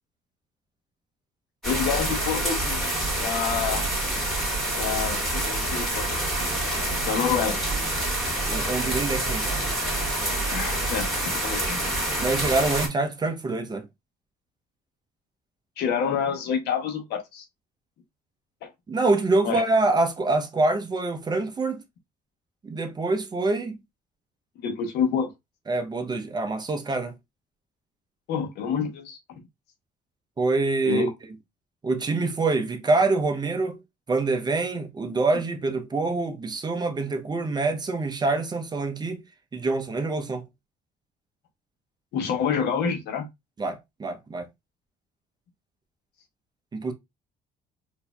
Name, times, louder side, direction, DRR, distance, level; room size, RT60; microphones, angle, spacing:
voice 1, 1.6-3.8 4.8-6.1 6.4-6.5 7.0-7.6 10.5-11.9 15.8-17.4 18.6-18.7 19.4-19.6 24.6-25.3 28.3-29.2 30.8-31.1 42.1-43.3, left 7 dB, 75° left, 1.0 m, -28 dB
sound 1, 1.6-12.9, right 1 dB, ahead, 1.8 m, -27 dB
voice 2, 8.5-9.5 12.2-13.9 18.9-21.8 22.6-23.8 25.7-27.1 30.4-31.1 31.8-33.8 34.1-39.2 39.5-40.5 43.6-44.5 46.7-46.9, right 3 dB, 25° right, 0.7 m, -25 dB
4.1 x 2.7 x 2.3 m
cardioid pair, 110°, 17 cm